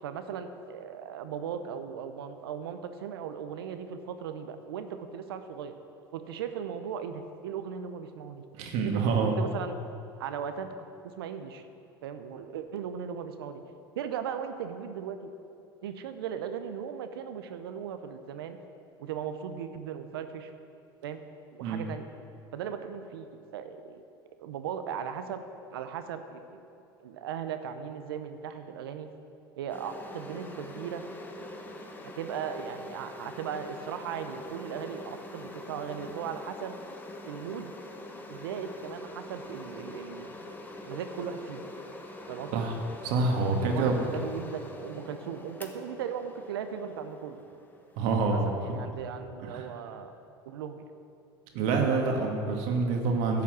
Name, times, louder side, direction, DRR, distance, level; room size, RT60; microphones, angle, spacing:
voice 1, 0.0-5.7 6.1-8.4 8.8-9.8 10.2-10.7 11.0-11.6 12.0-13.6 13.9-15.3 15.8-18.6 19.0-20.5 21.0-21.2 21.5-22.1 22.5-24.0 24.4-25.4 25.7-26.6 27.0-29.1 29.6-31.0 32.0-36.8 37.2-37.7 38.3-40.3 40.9-41.6 42.3-42.7 43.7-47.4 48.3-50.2 50.5-50.9, right 8 dB, 85° right, 9 dB, 0.8 m, -37 dB
voice 2, 8.6-9.4 21.6-21.8 42.5-42.7 43.0-43.9 48.0-48.8 49.4-49.7 51.5-53.4, right 4 dB, 65° right, 2 dB, 1.8 m, -27 dB
sound 1, 29.7-48.2, left 1 dB, 15° left, 1.3 m, -44 dB
11.0 x 5.8 x 7.5 m, 2.7 s
hypercardioid pair, 85°, 12 cm